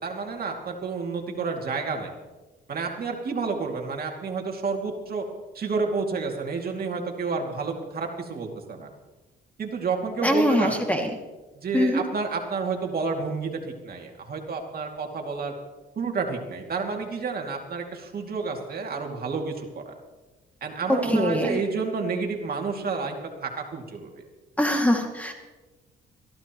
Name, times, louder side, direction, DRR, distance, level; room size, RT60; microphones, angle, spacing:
voice 1, 0.0-2.1 2.7-5.2 5.5-8.9 9.6-10.8 11.5-15.5 16.0-20.0 20.6-24.2, right 4 dB, 50° right, 2 dB, 2.5 m, -30 dB
voice 2, 10.2-11.1 11.7-12.0 21.0-21.6 24.6-25.3, left 1 dB, 5° left, 2 dB, 2.3 m, -23 dB
22.5 x 15.0 x 3.1 m, 1.2 s
cardioid pair, 90°, 20 cm